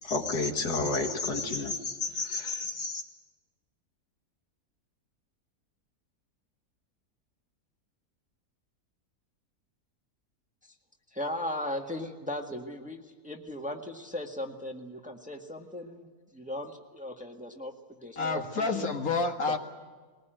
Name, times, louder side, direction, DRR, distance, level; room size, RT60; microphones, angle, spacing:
voice 1, 0.0-3.0, left 3 dB, 80° left, 4 dB, 2.6 m, -31 dB
voice 2, 11.1-16.1 16.3-18.9 19.5-19.6, left 1 dB, 5° right, 3 dB, 1.6 m, -37 dB
voice 3, 18.2-19.6, left 3 dB, 65° left, 4 dB, 2.2 m, -29 dB
21.5 x 19.5 x 9.1 m, 1.4 s
omnidirectional pair, 1.7 m